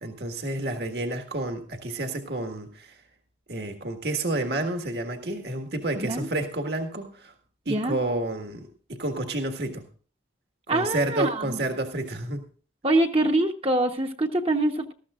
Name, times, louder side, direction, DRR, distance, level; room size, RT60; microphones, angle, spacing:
voice 1, 0.0-3.0 3.5-7.3 7.7-9.9 10.7-12.4, right 2 dB, 60° right, 5 dB, 1.8 m, -30 dB
voice 2, 6.0-6.3 7.7-8.0 10.7-11.6 12.8-14.9, right 1 dB, 30° right, 3 dB, 1.0 m, -24 dB
19.5 x 14.0 x 2.5 m, 0.40 s
head